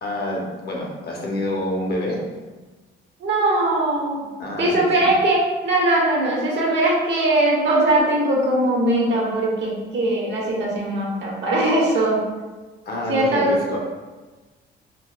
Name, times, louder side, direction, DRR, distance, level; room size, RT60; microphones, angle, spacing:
voice 1, 0.0-2.2 4.4-5.1 12.9-13.8, left 1 dB, 55° left, -2 dB, 0.9 m, -27 dB
voice 2, 3.2-4.3 4.6-12.2 13.1-13.5, right 1 dB, 65° right, -3 dB, 1.0 m, -20 dB
3.9 x 2.3 x 2.3 m, 1.3 s
cardioid pair, 90°, 20 cm